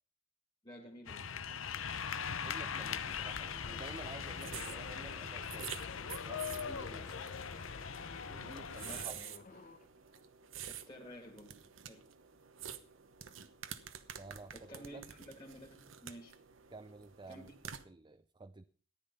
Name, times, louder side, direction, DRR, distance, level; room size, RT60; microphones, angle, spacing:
voice 1, 0.6-1.6 8.8-9.2 10.7-11.6 11.8-12.0 14.5-16.3 17.3-17.5, equal, 25° left, -2 dB, 2.4 m, -52 dB
sound 1, 1.1-9.0, left 7 dB, 80° left, 0.9 m, -41 dB
voice 2, 2.4-5.7 6.1-7.2 8.3-9.2 14.2-15.0 16.7-17.5 17.8-18.7, right 3 dB, 25° right, 10 dB, 0.5 m, -51 dB
sound 2, 3.2-9.9 10.1-10.3, left 4 dB, 40° left, 0.9 m, -53 dB
sound 3, 3.7-17.8, right 8 dB, 75° right, 1.1 m, -49 dB
14.0 x 10.5 x 5.5 m, 0.41 s
head